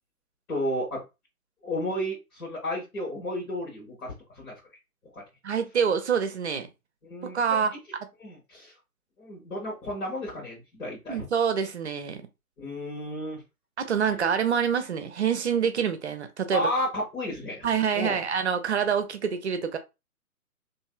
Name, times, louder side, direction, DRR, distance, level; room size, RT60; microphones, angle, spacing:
voice 1, 0.5-1.0 1.6-4.5 5.1-5.2 7.0-7.4 8.2-8.7 9.2-11.3 12.6-13.4 16.5-17.7 17.9-18.2, left 1 dB, 70° left, 1.2 m, -32 dB
voice 2, 5.4-6.7 7.3-7.7 11.1-12.2 13.8-16.7 17.6-19.8, right 7 dB, 50° right, 0.5 m, -26 dB
2.9 x 2.6 x 2.2 m
figure-of-eight pair, 135°, 44 cm